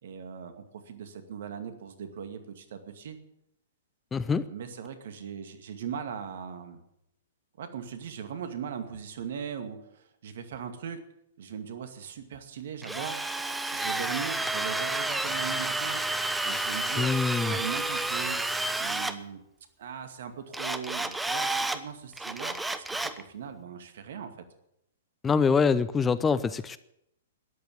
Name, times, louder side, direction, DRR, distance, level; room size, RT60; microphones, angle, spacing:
voice 1, 0.0-3.2 4.5-6.8 7.6-11.0 11.4-13.2 13.7-16.0 16.4-18.4 18.8-19.4 19.8-24.4, right 7 dB, 60° right, 8 dB, 2.2 m, -39 dB
voice 2, 4.1-4.4 17.0-17.6 25.2-26.8, left 5 dB, 15° left, 16 dB, 0.6 m, -25 dB
Drill, 12.8-19.1 20.5-21.8 22.2-23.2, right 2 dB, 5° right, 1.0 m, -30 dB
13.5 x 10.5 x 8.7 m, 0.79 s
figure-of-eight pair, 115°, 0 cm